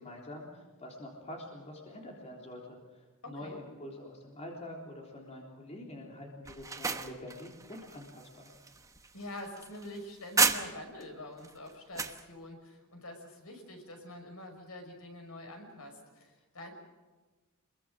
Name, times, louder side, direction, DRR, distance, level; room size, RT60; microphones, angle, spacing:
voice 1, 0.0-8.5, left 1 dB, 30° left, -1 dB, 3.6 m, -46 dB
voice 2, 3.2-3.6 9.1-16.7, left 1 dB, 70° left, 4 dB, 5.7 m, -46 dB
sound 1, 6.4-11.0 11.4-12.2, right 4 dB, 15° right, 1.1 m, -33 dB
26.5 x 22.5 x 6.4 m, 1.3 s
head